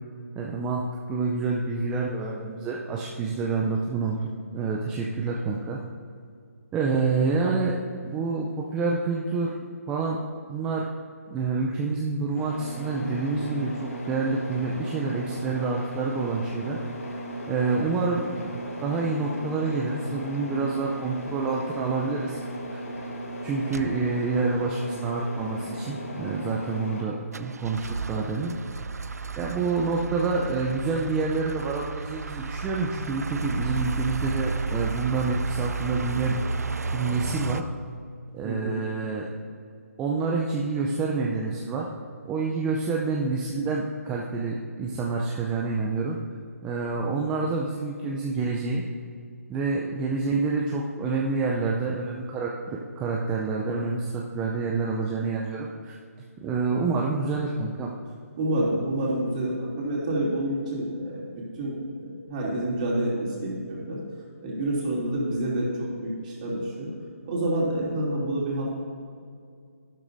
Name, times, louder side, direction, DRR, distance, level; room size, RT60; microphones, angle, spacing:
voice 1, 0.4-5.8 6.7-9.5 9.9-10.2 10.5-10.9 11.3-16.8 17.5-22.4 22.7-22.8 23.4-28.5 29.4-36.4 36.9-37.6 38.3-39.3 40.0-41.9 42.2-46.2 46.6-48.8 49.5-55.9 56.4-57.9, right 4 dB, 10° right, -2 dB, 0.5 m, -28 dB
sound 1, 12.3-27.0, right 1 dB, 70° left, 2.2 m, -36 dB
sound 2, 21.3-21.5 22.0-22.2 22.5-22.6 22.8-23.3 23.7-24.5 24.9-25.0 25.1-25.6 26.1-27.0 27.3-37.6, right 4 dB, 80° right, 0.5 m, -32 dB
voice 2, 38.4-38.8 58.4-61.2 61.6-64.0 64.4-66.9 67.2-68.7, right 1 dB, 30° right, -4 dB, 2.8 m, -28 dB
12.0 x 12.0 x 2.6 m, 2.2 s
figure-of-eight pair, 155°, 8 cm